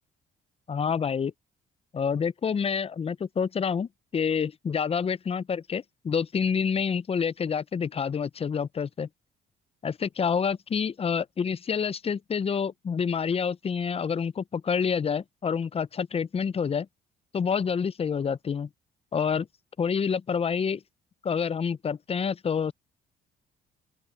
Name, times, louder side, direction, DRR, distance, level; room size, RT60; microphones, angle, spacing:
voice 1, 0.7-1.3 1.9-9.1 9.8-16.9 17.3-18.7 19.1-19.5 19.8-20.8 21.2-22.7, left 6 dB, 30° left, 0.5 m, -28 dB
open air
cardioid pair, 75°, 20 cm